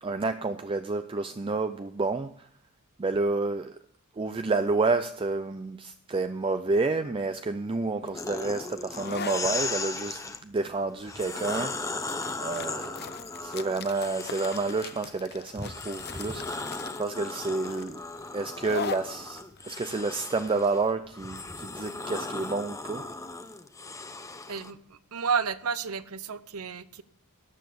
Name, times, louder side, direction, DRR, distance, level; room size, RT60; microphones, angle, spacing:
voice 1, 0.0-2.5 3.0-3.8 4.2-11.9 12.4-13.0 13.4-18.0 18.3-23.1, right 3 dB, 25° right, 0.4 m, -30 dB
sound 1, 8.0-21.4, left 6 dB, 45° left, 0.7 m, -41 dB
sound 2, 8.1-10.4 11.0-15.1 15.6-24.7, left 3 dB, 15° left, 0.8 m, -37 dB
voice 2, 24.5-27.0, right 6 dB, 75° right, 0.8 m, -31 dB
14.0 x 9.9 x 6.9 m
head